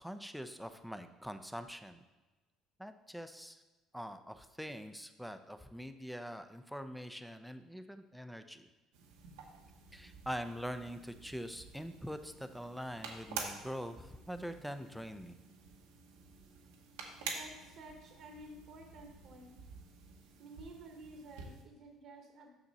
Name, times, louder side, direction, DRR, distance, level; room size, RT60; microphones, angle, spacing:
voice 1, 0.0-2.0 2.8-3.6 3.9-8.7 9.9-15.4, equal, ahead, 9 dB, 0.6 m, -44 dB
sound 1, 8.9-21.6, right 5 dB, 90° right, 1.1 m, -49 dB
voice 2, 17.3-19.6 20.4-22.5, right 1 dB, 65° right, 2 dB, 1.2 m, -52 dB
6.4 x 6.0 x 4.1 m, 1.1 s
supercardioid pair, 80°, 0 cm